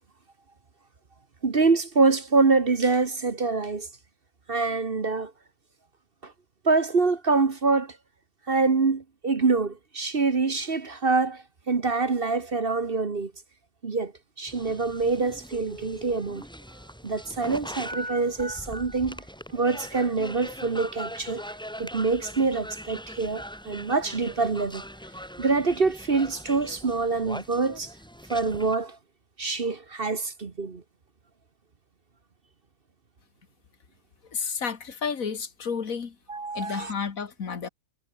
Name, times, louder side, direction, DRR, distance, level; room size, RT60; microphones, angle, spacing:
voice 1, 1.4-3.9 4.5-5.3 6.2-6.3 6.6-8.0 8.5-13.3 13.8-14.1 14.4-16.4 17.0-19.2 19.5-21.4 21.8-24.8 25.4-27.9 28.3-29.0 29.4-30.8 36.3-36.9, right 4 dB, 40° right, 1.5 m, -25 dB
sound 1, 14.5-28.8, equal, 5° left, 4.8 m, -41 dB
Telephone, 15.4-20.3 20.8-20.9 21.3-21.5 21.8-22.1 22.5-22.6, right 2 dB, 75° right, 5.5 m, -49 dB
voice 2, 34.3-36.2 36.5-37.7, left 6 dB, 65° left, 2.1 m, -31 dB
omnidirectional pair, 1.6 m